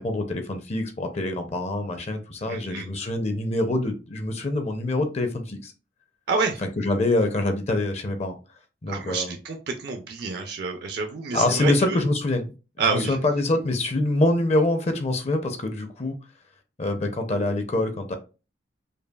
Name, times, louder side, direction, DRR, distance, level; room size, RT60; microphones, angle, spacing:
voice 1, 0.0-5.7 6.6-8.4 8.8-9.3 11.3-12.5 12.9-16.2 16.8-18.2, left 2 dB, 35° left, 0.5 m, -25 dB
voice 2, 2.5-2.9 6.3-6.6 8.9-12.0 12.8-13.2, right 4 dB, 60° right, 0.5 m, -28 dB
5.2 x 2.3 x 2.3 m
head